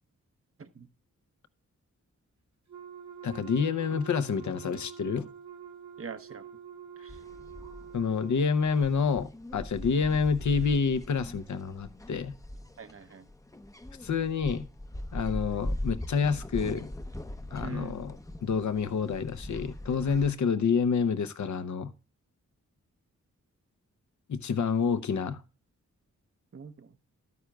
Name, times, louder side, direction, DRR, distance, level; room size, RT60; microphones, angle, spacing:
Wind instrument woodwind instrument, 2.7-8.5, right 7 dB, 65° right, 1.7 m, -46 dB
voice 1, 3.2-5.3 7.9-12.3 14.0-14.7 15.1-16.9 17.5-21.9 24.3-25.4, left 5 dB, 65° left, 0.8 m, -28 dB
voice 2, 6.0-6.4 7.0-7.2 12.8-13.3 17.6-18.0 26.5-26.9, right 5 dB, 45° right, 0.8 m, -43 dB
sound 1, 7.1-20.3, left 1 dB, 10° left, 0.7 m, -40 dB
11.5 x 9.5 x 2.3 m
cardioid pair, 70°, 31 cm